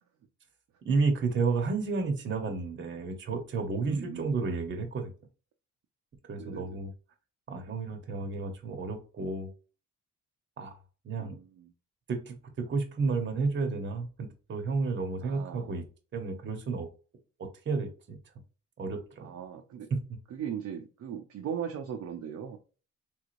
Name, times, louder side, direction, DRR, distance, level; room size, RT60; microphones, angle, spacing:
voice 1, 0.8-5.1 6.3-6.9 7.5-9.5 10.6-10.7 11.0-11.3 12.1-12.4 12.7-15.8 16.1-16.9 17.4-18.2 18.8-19.3 19.9-20.0, right 4 dB, 40° right, 0.8 m, -31 dB
voice 2, 3.8-4.3 6.3-6.8 11.2-11.7 15.2-15.8 19.2-19.9 20.3-22.6, right 8 dB, 60° right, 0.6 m, -39 dB
3.4 x 3.1 x 2.5 m
cardioid pair, 90°, 30 cm